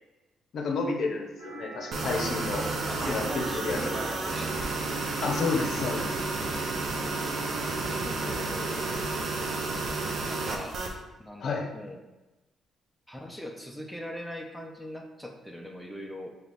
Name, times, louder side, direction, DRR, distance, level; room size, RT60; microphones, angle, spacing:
voice 1, 0.5-2.7 3.1-3.8 5.2-6.1 11.4-11.7, left 4 dB, 65° left, 1 dB, 0.7 m, -30 dB
sound 1, 1.4-8.9, right 2 dB, 90° right, 0.9 m, -43 dB
sound 2, 1.9-10.9, right 3 dB, 60° right, 0.6 m, -31 dB
voice 2, 2.9-4.5 7.8-8.7 10.3-10.8 11.2-12.0 13.1-16.3, equal, ahead, 0 dB, 0.5 m, -40 dB
4.0 x 2.9 x 3.4 m, 1.1 s
cardioid pair, 90°, 0 cm